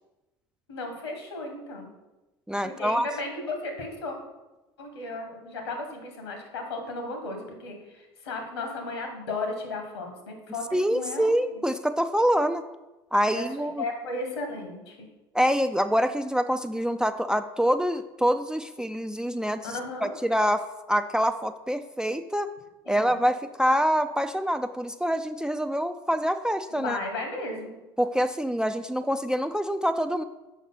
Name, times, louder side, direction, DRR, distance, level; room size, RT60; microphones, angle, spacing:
voice 1, 0.7-1.9 2.6-4.2 4.8-10.6 10.9-11.6 13.3-15.0 19.6-20.1 22.9-23.2 26.7-27.8, left 2 dB, 80° left, 4 dB, 1.4 m, -35 dB
voice 2, 2.5-3.1 10.7-12.6 13.1-13.8 15.3-19.7 20.0-22.5 22.9-27.0 28.0-30.2, equal, 5° right, 9 dB, 0.3 m, -25 dB
6.3 x 5.3 x 3.9 m, 1.0 s
figure-of-eight pair, 65°, 13 cm